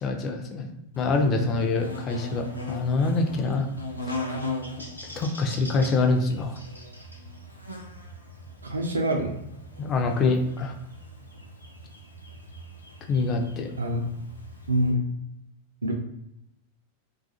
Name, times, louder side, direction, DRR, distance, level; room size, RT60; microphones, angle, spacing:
voice 1, 0.0-3.7 5.2-6.5 9.8-10.7 13.1-13.7, left 3 dB, 30° left, 4 dB, 0.4 m, -25 dB
Buzz, 0.9-14.9, left 1 dB, 90° left, 0.4 m, -39 dB
voice 2, 8.6-9.4 13.8-14.0 14.7-15.1 15.8-15.9, right 1 dB, 75° right, 2 dB, 0.4 m, -25 dB
2.3 x 2.3 x 2.7 m, 0.81 s
figure-of-eight pair, 90°, 0 cm